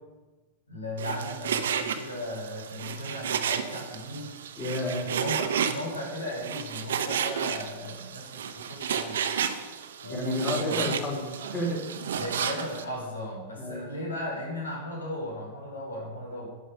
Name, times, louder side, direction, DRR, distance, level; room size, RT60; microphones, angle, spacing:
voice 1, 0.7-4.3 5.1-9.2 10.0-10.9 12.1-16.5, equal, 85° left, -3 dB, 4.9 m, -36 dB
Frying (food), 1.0-12.8, right 7 dB, 70° right, 1.0 m, -32 dB
voice 2, 4.6-5.1 10.1-11.8 13.6-13.9, left 1 dB, 30° left, -2 dB, 4.2 m, -31 dB
11.5 x 9.7 x 5.3 m, 1.2 s
figure-of-eight pair, 95°, 0 cm